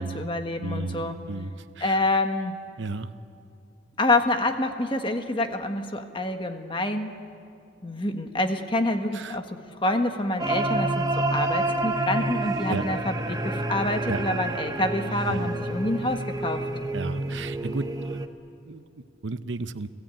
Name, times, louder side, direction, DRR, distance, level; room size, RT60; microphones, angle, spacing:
voice 1, 0.0-1.2 1.8-2.6 4.0-7.2 7.8-16.6, left 2 dB, 25° left, 6 dB, 1.4 m, -27 dB
voice 2, 0.6-2.0 2.8-3.1 9.1-9.4 12.7-12.8 14.1-14.2 15.3-15.4 16.9-18.2 18.7-18.8 19.2-19.9, right 3 dB, 75° right, 13 dB, 0.7 m, -33 dB
sound 1, 10.4-18.3, right 2 dB, 20° right, 1.0 m, -28 dB
30.0 x 17.0 x 9.0 m, 2.5 s
head